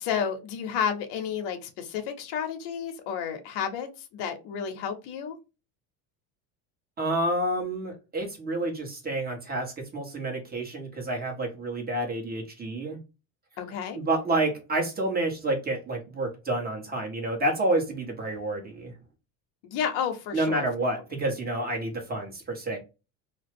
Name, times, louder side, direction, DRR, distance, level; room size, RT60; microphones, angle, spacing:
voice 1, 0.0-5.4 13.6-14.0 19.6-20.7, left 7 dB, 70° left, 5 dB, 0.9 m, -31 dB
voice 2, 7.0-13.0 13.9-18.9 20.3-22.8, right 1 dB, 20° right, 1 dB, 1.4 m, -29 dB
2.8 x 2.3 x 3.4 m, 0.28 s
supercardioid pair, 115°, 44 cm